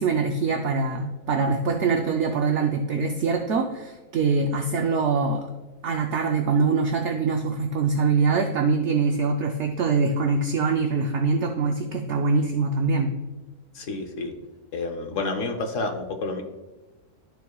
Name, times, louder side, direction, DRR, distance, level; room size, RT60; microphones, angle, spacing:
voice 1, 0.0-5.5 5.8-13.1, right 4 dB, 60° right, 3 dB, 0.8 m, -23 dB
voice 2, 13.7-14.3 14.7-16.4, left 3 dB, 60° left, 3 dB, 1.0 m, -29 dB
12.5 x 4.6 x 2.3 m, 1.1 s
omnidirectional pair, 1.7 m